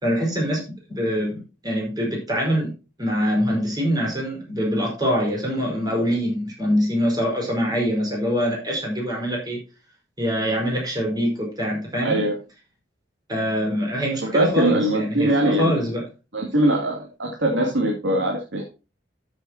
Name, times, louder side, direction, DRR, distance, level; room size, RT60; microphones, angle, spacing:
voice 1, 0.0-2.7 3.0-9.6 10.2-12.2 13.3-16.0, equal, 20° right, -1 dB, 5.0 m, -24 dB
voice 2, 12.0-12.3 14.3-15.8 16.3-18.7, right 1 dB, 75° right, 0 dB, 2.6 m, -21 dB
13.5 x 7.8 x 2.9 m, 0.30 s
head